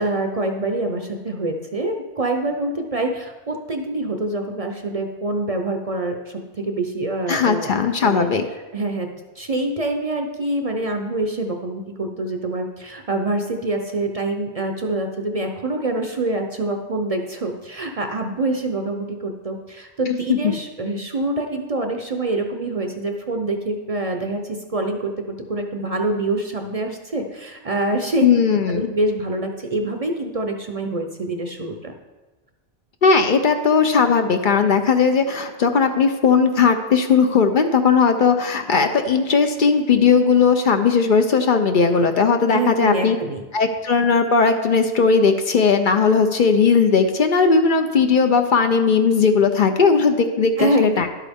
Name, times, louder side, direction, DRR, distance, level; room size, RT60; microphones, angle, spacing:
voice 1, 0.0-7.7 8.0-8.3 8.7-9.1 9.4-28.3 28.7-31.9 42.5-43.4 50.6-50.9, right 2 dB, 40° right, 4 dB, 0.6 m, -25 dB
voice 2, 7.3-8.4 20.1-20.5 28.2-28.9 33.0-43.2 43.5-51.1, left 5 dB, 55° left, 6 dB, 0.7 m, -17 dB
11.0 x 8.3 x 3.5 m, 1.2 s
omnidirectional pair, 1.1 m